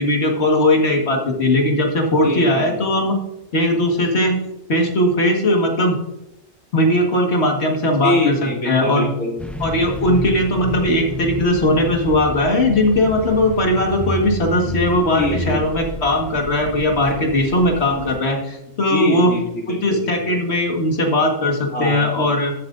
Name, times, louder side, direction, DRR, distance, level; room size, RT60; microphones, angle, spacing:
voice 1, 0.0-3.2 3.5-4.4 4.7-6.0 6.7-8.4 8.7-9.1 9.6-19.3 19.7-22.5, left 1 dB, 55° left, 2 dB, 2.0 m, -18 dB
voice 2, 2.2-2.8 7.8-9.5 14.9-15.7 18.7-20.1 21.7-22.3, left 2 dB, 85° left, -4 dB, 2.9 m, -25 dB
sound 1, 9.4-18.2, equal, ahead, 0.4 m, -30 dB
13.5 x 7.7 x 2.6 m, 0.87 s
omnidirectional pair, 1.4 m